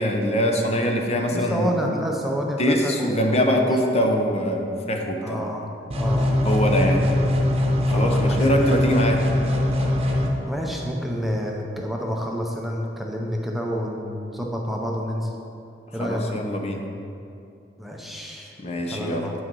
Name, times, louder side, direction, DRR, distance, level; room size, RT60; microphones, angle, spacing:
voice 1, 0.0-1.7 2.6-5.4 6.4-7.0 7.9-9.2 16.0-16.8 18.6-19.2, equal, 35° left, 2 dB, 0.8 m, -23 dB
voice 2, 1.3-3.7 5.2-5.7 6.0-6.6 7.9-8.8 10.5-15.3 15.9-16.2 17.8-18.5 18.9-19.3, equal, ahead, -1 dB, 0.7 m, -29 dB
sound 1, 5.9-10.3, left 1 dB, 35° right, 1.0 m, -21 dB
8.7 x 6.2 x 4.7 m, 2.6 s
head